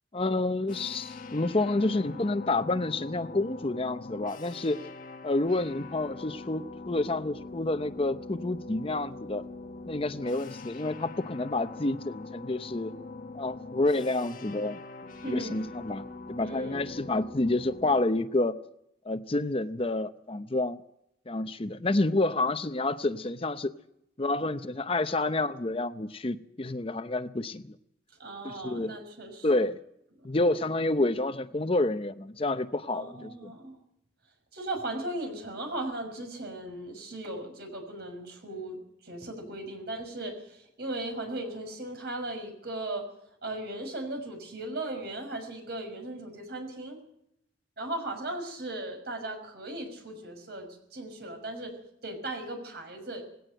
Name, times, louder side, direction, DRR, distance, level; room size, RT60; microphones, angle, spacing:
voice 1, 0.1-4.8 5.2-9.4 9.9-12.9 13.3-14.8 15.3-18.6 19.0-20.8 21.3-23.7 24.2-27.8 28.4-28.9 29.4-29.8 30.2-33.6, left 2 dB, 30° left, 11 dB, 0.7 m, -29 dB
sound 1, 0.7-18.0, left 3 dB, 50° left, 1.5 m, -43 dB
voice 2, 15.2-15.6 16.4-16.8 28.2-29.5 32.9-33.8 34.5-38.8 39.0-43.0 43.4-47.0 47.8-51.7 52.0-53.3, right 1 dB, 60° right, 4 dB, 6.0 m, -37 dB
19.5 x 17.0 x 7.8 m, 0.76 s
head